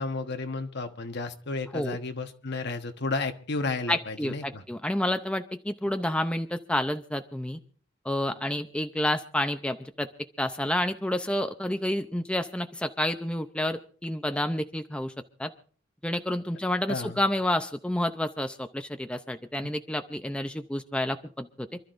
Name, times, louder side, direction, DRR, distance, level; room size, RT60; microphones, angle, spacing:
voice 1, 0.0-4.6 16.9-17.2, left 3 dB, 55° left, 7 dB, 1.2 m, -32 dB
voice 2, 3.9-7.6 8.0-10.1 10.4-15.1 15.4-15.5 16.0-21.8, left 1 dB, 5° left, 7 dB, 0.5 m, -29 dB
28.0 x 12.5 x 2.6 m, 0.43 s
head